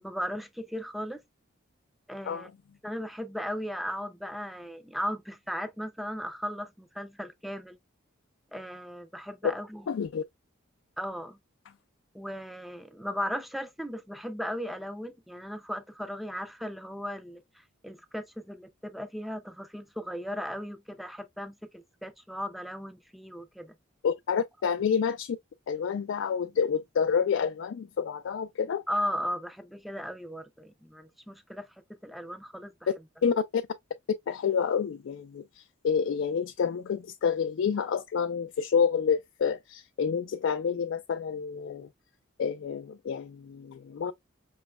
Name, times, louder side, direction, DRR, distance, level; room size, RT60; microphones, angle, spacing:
voice 1, 0.0-1.2 2.1-2.5 2.8-7.8 8.5-9.9 11.0-11.4 12.1-17.4 17.8-23.7 28.9-31.7 32.0-32.7, equal, ahead, 0.4 m, -36 dB
voice 2, 9.9-10.2 24.0-25.4 25.7-28.8 33.2-33.6 34.3-41.9 42.4-44.1, left 6 dB, 70° left, 0.3 m, -28 dB
5.2 x 3.1 x 2.2 m
head